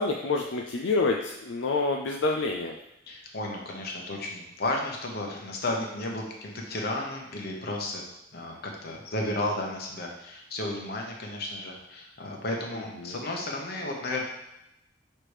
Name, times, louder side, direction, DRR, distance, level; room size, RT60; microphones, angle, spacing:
voice 1, 0.0-2.8 12.7-13.2, left 3 dB, 75° left, 1 dB, 0.5 m, -28 dB
voice 2, 3.1-8.0 8.3-14.2, left 2 dB, 55° left, 0 dB, 1.1 m, -33 dB
5.8 x 3.3 x 4.9 m, 0.84 s
head